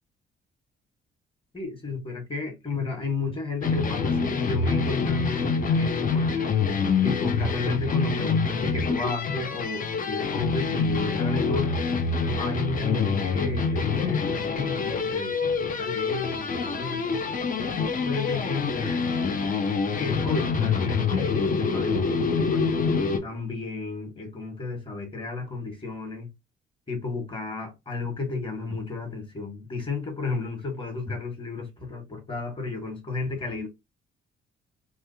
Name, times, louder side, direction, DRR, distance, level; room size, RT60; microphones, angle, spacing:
voice 1, 1.5-6.4 7.0-11.8 12.3-17.2 18.0-19.1 20.0-22.7 23.2-26.3 26.9-33.7, left 3 dB, 25° left, 1.4 m, -33 dB
sound 1, 3.6-23.2, left 5 dB, 45° left, 0.7 m, -26 dB
3.1 x 2.3 x 2.7 m
cardioid pair, 90°, 20 cm